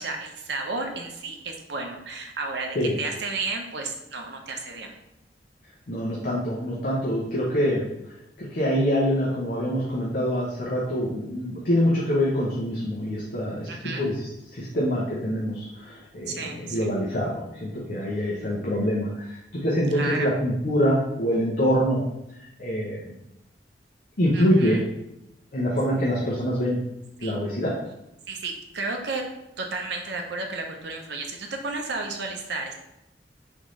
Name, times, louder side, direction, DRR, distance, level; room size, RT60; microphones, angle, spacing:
voice 1, 0.0-4.9 13.7-14.0 16.3-16.9 19.9-20.3 24.3-24.8 27.2-27.4 28.3-29.2 29.6-32.7, right 3 dB, 70° right, 3 dB, 0.6 m, -32 dB
voice 2, 5.9-7.8 8.4-13.7 14.0-22.0 22.6-23.0 24.2-24.8 25.5-26.8 27.2-27.8, equal, 55° left, -6 dB, 0.8 m, -25 dB
3.8 x 3.5 x 3.1 m, 0.85 s
head